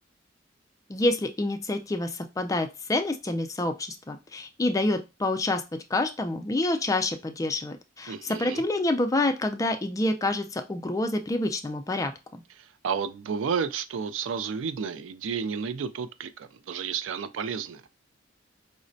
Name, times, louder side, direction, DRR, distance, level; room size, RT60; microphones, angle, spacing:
voice 1, 0.9-5.6 5.9-12.1, left 2 dB, 15° left, 0.3 m, -27 dB
voice 2, 8.1-8.6 12.6-17.8, right 6 dB, 90° right, 0.4 m, -31 dB
4.9 x 2.1 x 2.6 m
head